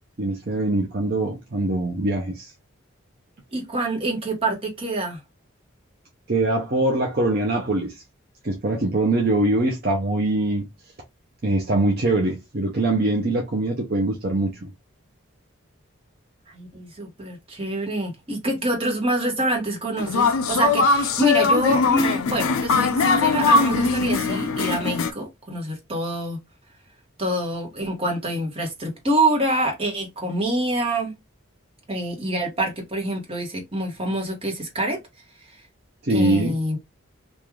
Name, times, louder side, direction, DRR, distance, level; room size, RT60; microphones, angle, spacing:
voice 1, 0.2-2.5 6.3-8.0 8.4-10.7 11.4-14.7 36.0-36.5, right 2 dB, 45° right, 0.6 m, -23 dB
voice 2, 3.5-5.2 16.5-26.4 27.2-31.1 31.9-35.0 36.1-36.8, right 1 dB, 25° right, 1.2 m, -26 dB
sound 1, 20.0-25.1, left 4 dB, 80° left, 0.5 m, -21 dB
3.1 x 2.5 x 3.6 m
head